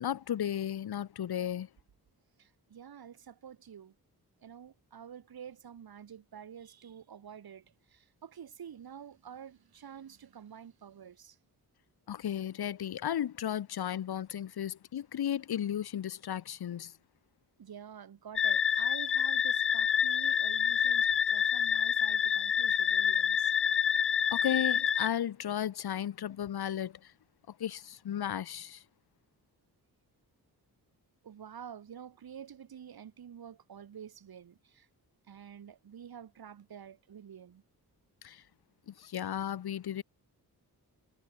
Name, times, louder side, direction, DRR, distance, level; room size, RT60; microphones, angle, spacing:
voice 1, 0.0-1.7 12.1-16.9 24.3-27.1 27.6-28.8 38.2-38.4 38.9-40.0, left 10 dB, 75° left, 1.5 m, -34 dB
voice 2, 2.4-3.9 4.4-11.4 17.6-23.5 31.2-34.9 35.3-37.6, right 8 dB, 70° right, 4.5 m, -49 dB
sound 1, 18.4-25.1, left 8 dB, 35° left, 0.5 m, -27 dB
wide cardioid pair, 170°, 38 cm